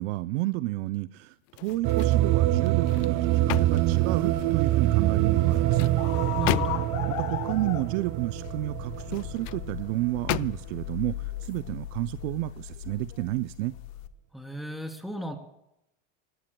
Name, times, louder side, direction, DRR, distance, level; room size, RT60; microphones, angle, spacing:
voice 1, 0.0-1.3 1.6-5.9 7.1-13.7, right 18 dB, 65° right, 14 dB, 0.6 m, -31 dB
sound 1, 1.5-2.2 2.7-4.6 5.4-7.1 8.9-9.6 10.3-10.9 11.4-11.6, left 22 dB, 50° left, 0.4 m, -34 dB
sound 2, 1.8-10.1, right 15 dB, 50° right, 1.1 m, -25 dB
sound 3, 3.8-14.1, left 15 dB, 75° left, 1.2 m, -38 dB
voice 2, 6.4-6.8 14.3-15.4, equal, ahead, 3 dB, 3.3 m, -35 dB
25.5 x 19.5 x 2.3 m, 0.84 s
supercardioid pair, 110°, 39 cm